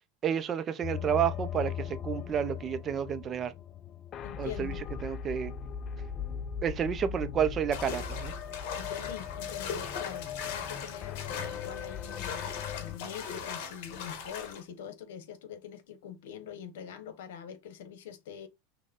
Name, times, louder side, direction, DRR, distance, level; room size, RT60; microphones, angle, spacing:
voice 1, 0.2-3.5 4.4-4.7 5.0-5.5 6.6-8.3, right 8 dB, 25° right, 0.5 m, -30 dB
sound 1, 0.8-13.0, left 8 dB, 30° left, 0.4 m, -39 dB
voice 2, 4.2-4.8 8.8-18.5, left 8 dB, 85° left, 1.0 m, -44 dB
sound 2, 7.7-14.6, left 7 dB, 65° left, 1.3 m, -39 dB
6.2 x 2.2 x 3.5 m
supercardioid pair, 150°, 0 cm